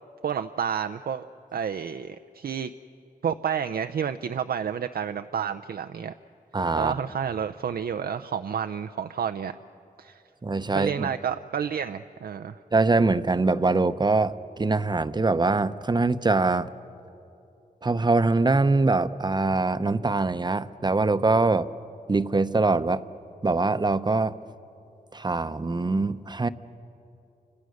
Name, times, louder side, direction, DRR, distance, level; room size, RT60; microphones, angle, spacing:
voice 1, 0.2-1.2 1.5-2.7 3.2-6.1 6.8-9.5 10.0-10.2 10.7-12.6, right 8 dB, 75° right, 9 dB, 0.6 m, -30 dB
voice 2, 6.5-7.0 10.4-11.1 12.7-16.7 17.8-21.7 22.1-23.0 23.4-24.4 25.1-26.5, right 3 dB, 30° right, 13 dB, 0.8 m, -23 dB
29.0 x 26.0 x 6.5 m, 2.8 s
cardioid pair, 75°, 16 cm